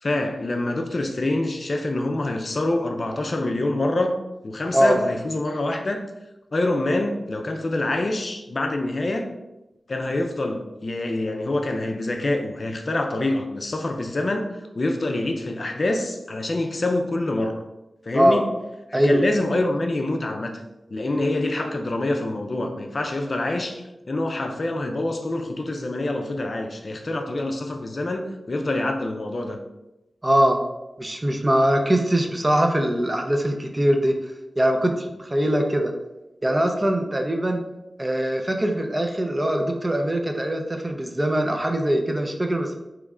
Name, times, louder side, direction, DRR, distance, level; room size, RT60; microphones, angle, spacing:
voice 1, 0.0-4.2 4.4-6.0 6.5-9.3 9.9-17.6 18.0-18.5 18.9-20.6 20.9-29.6 31.0-31.1, left 2 dB, 50° left, 4 dB, 0.5 m, -26 dB
voice 2, 30.2-30.6 31.0-34.2 34.6-35.9 36.4-37.6 38.0-42.8, right 1 dB, 25° right, 3 dB, 0.5 m, -22 dB
3.5 x 3.1 x 3.6 m, 0.97 s
wide cardioid pair, 85°, 0 cm